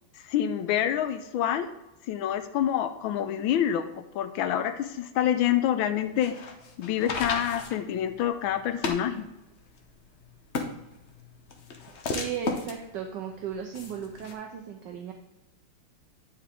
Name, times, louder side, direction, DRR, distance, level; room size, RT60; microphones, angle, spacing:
voice 1, 0.2-1.7 2.1-3.8 4.1-6.4 6.8-9.3, left 10 dB, 80° left, 9 dB, 1.4 m, -27 dB
sound 1, 6.0-14.3, left 4 dB, 55° left, 0.8 m, -36 dB
voice 2, 12.1-15.1, right 8 dB, 70° right, 3 dB, 1.3 m, -36 dB
9.5 x 4.9 x 3.6 m, 0.97 s
omnidirectional pair, 2.2 m